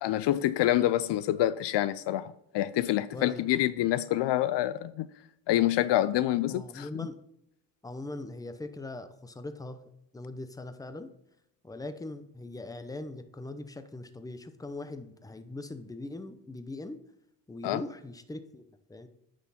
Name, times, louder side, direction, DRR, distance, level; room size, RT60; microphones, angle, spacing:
voice 1, 0.0-5.1 5.5-7.1 17.6-17.8, left 13 dB, 65° left, 0.5 m, -27 dB
voice 2, 3.1-3.4 6.5-7.2 7.8-9.8 10.1-11.1 11.6-17.0 17.5-18.6 18.9-19.1, left 2 dB, 10° left, 0.8 m, -41 dB
9.2 x 6.3 x 4.2 m
cardioid pair, 85°, 45 cm